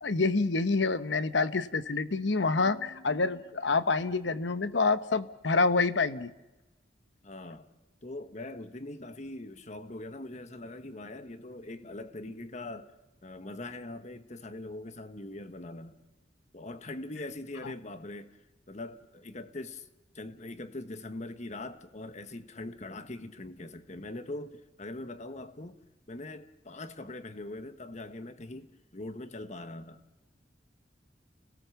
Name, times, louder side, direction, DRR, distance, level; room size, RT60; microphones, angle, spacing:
voice 1, 0.0-6.3, left 3 dB, 85° left, 1.0 m, -27 dB
voice 2, 7.2-7.7 8.0-12.9 13.2-16.0 16.5-18.4 18.7-19.9 20.1-25.8 26.1-30.0, left 2 dB, 40° left, 1.3 m, -42 dB
30.0 x 18.0 x 7.1 m
head